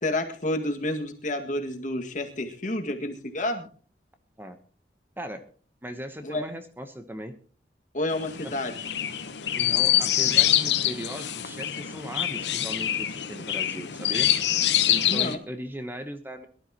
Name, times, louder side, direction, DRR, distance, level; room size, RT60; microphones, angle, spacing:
voice 1, 0.0-3.6 6.2-6.4 7.9-8.7 15.1-15.4, left 1 dB, 45° left, 4 dB, 2.0 m, -29 dB
voice 2, 5.8-7.3 8.4-8.5 9.5-14.3 14.6-16.5, equal, 10° right, 8 dB, 0.9 m, -38 dB
Chirp tweet, 8.1-15.3, left 11 dB, 75° left, 1.0 m, -25 dB
22.5 x 12.5 x 3.0 m, 0.40 s
head